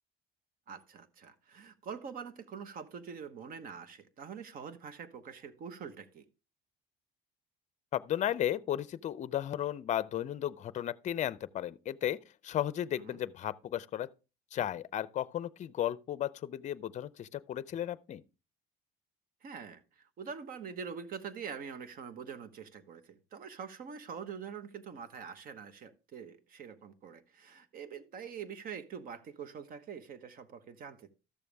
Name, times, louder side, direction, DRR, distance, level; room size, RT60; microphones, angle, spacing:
voice 1, 0.7-6.2 13.1-13.2 19.4-31.1, right 6 dB, 50° right, 1.2 m, -45 dB
voice 2, 7.9-12.2 12.4-14.1 14.5-18.2, left 11 dB, 40° left, 0.5 m, -34 dB
13.0 x 7.0 x 3.4 m
cardioid pair, 120°, 18 cm